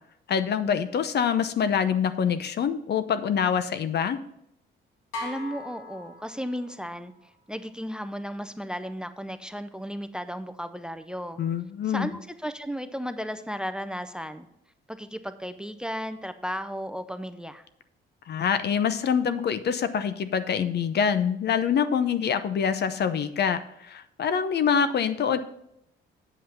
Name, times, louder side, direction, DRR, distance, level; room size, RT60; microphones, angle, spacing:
voice 1, 0.3-4.2 11.4-12.1 18.3-25.4, left 7 dB, 55° left, 12 dB, 0.7 m, -25 dB
Gas Bottle, 5.1-6.9, left 2 dB, 90° left, 2.1 m, -39 dB
voice 2, 5.2-7.1 7.5-11.4 11.9-14.5 14.9-17.6, equal, 5° right, 11 dB, 0.6 m, -34 dB
8.6 x 5.5 x 5.8 m, 0.79 s
cardioid pair, 90°, 20 cm